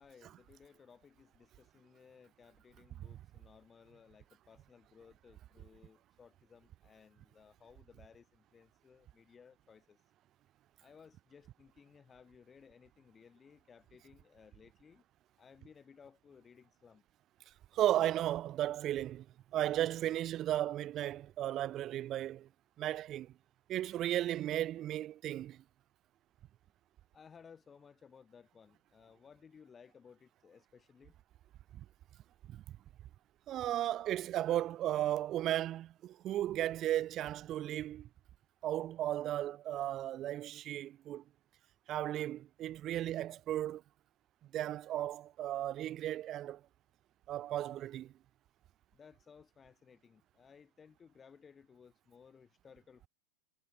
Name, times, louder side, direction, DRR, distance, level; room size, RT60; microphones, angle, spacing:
voice 1, 0.0-10.0 10.8-15.0 15.4-17.0 27.1-31.2 48.9-53.1, left 6 dB, 20° left, 4.1 m, -60 dB
voice 2, 17.7-19.2 19.5-22.5 22.8-23.3 23.7-25.6 32.5-32.6 33.5-38.1 38.6-41.2 41.9-43.8 44.5-46.6 47.3-48.1, right 13 dB, 30° right, 0.8 m, -35 dB
figure-of-eight pair, 90°, 0 cm